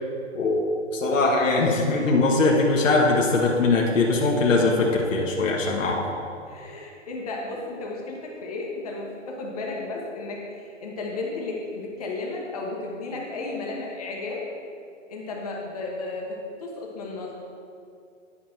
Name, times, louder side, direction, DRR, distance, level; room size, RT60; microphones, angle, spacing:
voice 1, 0.3-6.0, left 3 dB, 75° left, -1 dB, 1.3 m, -21 dB
voice 2, 6.5-14.4 15.1-17.3, left 3 dB, 30° left, -2 dB, 1.1 m, -33 dB
9.8 x 5.0 x 4.5 m, 2.5 s
hypercardioid pair, 165°, 39 cm